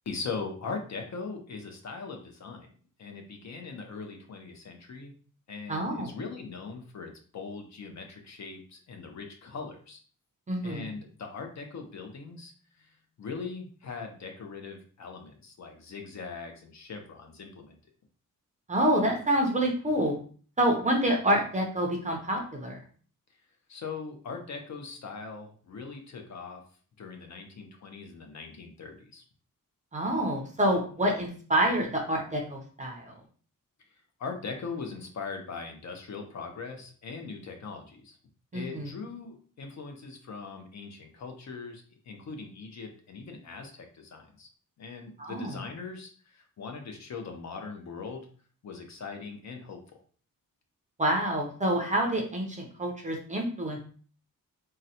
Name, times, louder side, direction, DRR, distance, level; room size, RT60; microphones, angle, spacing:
voice 1, 0.1-2.7 3.0-5.1 5.5-10.0 10.6-17.8 23.7-26.6 27.0-29.2 33.9-38.2 38.5-44.5 44.8-48.3 48.6-49.8, left 4 dB, 55° left, 4 dB, 0.6 m, -40 dB
voice 2, 5.7-6.1 10.5-10.9 18.7-20.2 20.6-22.8 29.9-33.1 38.5-38.9 45.2-45.5 51.0-53.8, right 1 dB, 20° right, 1 dB, 0.5 m, -27 dB
3.9 x 2.1 x 2.7 m, 0.43 s
wide cardioid pair, 180°, 34 cm